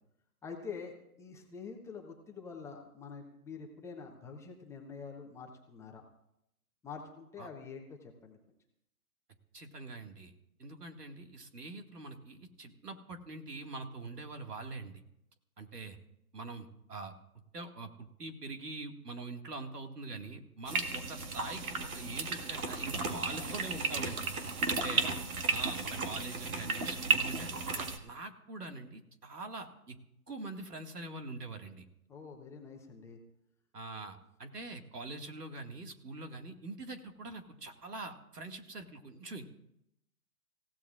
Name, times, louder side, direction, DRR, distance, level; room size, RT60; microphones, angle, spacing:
voice 1, 0.4-6.0 6.8-8.4 32.1-33.2, left 5 dB, 5° left, 0 dB, 0.9 m, -46 dB
voice 2, 9.5-10.3 10.6-15.0 15.6-16.0 16.3-17.1 17.5-24.3 24.7-25.1 25.5-30.0 30.3-31.9 33.7-39.5, right 3 dB, 85° right, 5 dB, 2.2 m, -44 dB
sound 1, 20.7-28.0, right 4 dB, 65° right, 2.1 m, -34 dB
27.0 x 16.0 x 2.5 m, 0.80 s
figure-of-eight pair, 140°, 46 cm